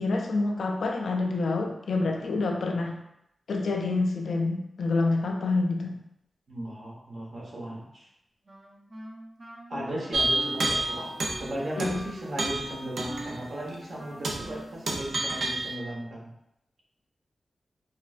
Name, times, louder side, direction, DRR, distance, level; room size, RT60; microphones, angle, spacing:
voice 1, 0.0-3.0 3.5-6.0 9.7-9.8 11.8-12.0, left 3 dB, 85° left, 3 dB, 0.4 m, -27 dB
voice 2, 6.5-8.1 9.7-16.3, right 1 dB, 70° right, -4 dB, 1.0 m, -36 dB
Wind instrument woodwind instrument, 8.5-15.9, right 1 dB, 45° right, 0.6 m, -45 dB
sound 1, 10.1-11.5 11.8-12.0 12.4-13.4 13.7-13.8 14.2-14.6 14.9-15.7, right 2 dB, 85° right, 0.4 m, -29 dB
4.2 x 2.2 x 2.4 m, 0.81 s
cardioid pair, 55°, 0 cm